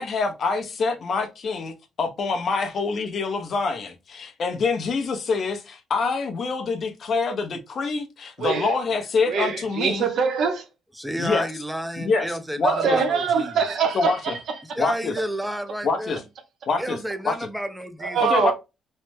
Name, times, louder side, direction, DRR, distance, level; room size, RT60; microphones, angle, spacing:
voice 1, 0.0-10.1 11.2-11.5 12.0-13.0 13.9-14.3 14.8-15.1 15.8-16.2 16.7-17.0 17.2-17.4 18.3-18.5, left 4 dB, 55° left, 0.7 m, -26 dB
voice 2, 8.4-8.7 9.3-10.6 12.6-14.4 14.7-14.8 18.0-18.5, right 6 dB, 70° right, 0.7 m, -23 dB
voice 3, 10.9-13.6 14.7-16.2 16.8-18.3, equal, 5° right, 0.5 m, -31 dB
3.2 x 2.0 x 3.2 m
cardioid pair, 90°, 0 cm